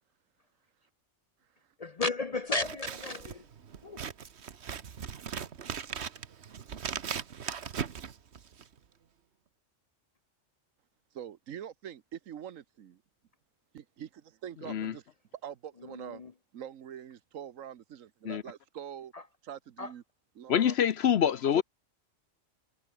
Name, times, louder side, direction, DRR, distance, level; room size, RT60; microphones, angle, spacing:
voice 1, 1.8-3.4 3.8-4.0 15.9-16.3 19.1-19.2 19.8-19.9 21.5-21.6, left 2 dB, 40° left, 0.6 m, -34 dB
Scissors, 2.5-8.8, right 7 dB, 55° right, 1.4 m, -39 dB
voice 2, 11.1-13.0 13.7-15.0 15.4-16.2 16.5-19.1 19.4-20.0 20.3-20.8, right 9 dB, 85° right, 1.3 m, -44 dB
voice 3, 20.5-21.6, left 9 dB, 60° left, 0.9 m, -25 dB
omnidirectional pair, 1.3 m